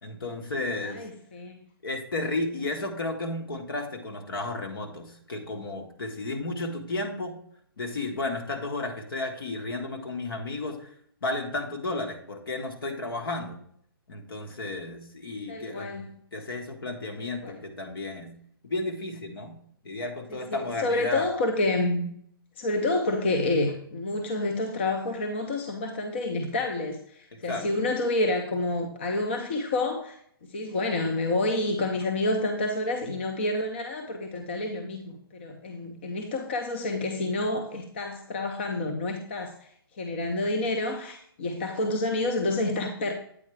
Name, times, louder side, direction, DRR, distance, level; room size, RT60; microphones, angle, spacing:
voice 1, 0.0-1.0 1.8-7.4 7.8-10.9 11.2-13.6 14.1-18.3 18.6-19.5 19.8-21.3 27.3-27.8, left 2 dB, 65° left, 4 dB, 1.4 m, -33 dB
voice 2, 0.8-1.6 15.5-16.1 17.2-17.6 20.3-22.1 22.6-30.2 30.5-39.6 39.9-43.1, left 2 dB, 30° left, 4 dB, 0.5 m, -29 dB
8.5 x 4.6 x 3.2 m, 0.65 s
hypercardioid pair, 175°, 13 cm